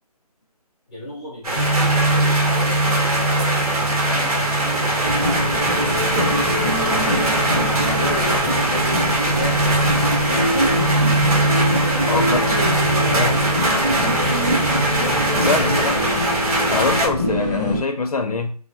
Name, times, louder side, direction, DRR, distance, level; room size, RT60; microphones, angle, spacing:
voice 1, 0.9-1.7 2.0-7.4 7.6-11.0 11.9-12.6 12.9-13.7 14.2-15.2 15.6-16.2, left 1 dB, 10° left, -6 dB, 0.5 m, -36 dB
sound 1, 1.4-17.1, right 1 dB, 65° right, 0.9 m, -22 dB
sound 2, 1.6-15.9, right 2 dB, 90° right, 0.4 m, -24 dB
sound 3, 5.0-17.8, equal, 15° right, 0.8 m, -24 dB
voice 2, 15.5-16.0 16.7-18.6, left 4 dB, 65° left, 6 dB, 0.5 m, -23 dB
2.2 x 2.2 x 2.7 m, 0.42 s
hypercardioid pair, 175°, 20 cm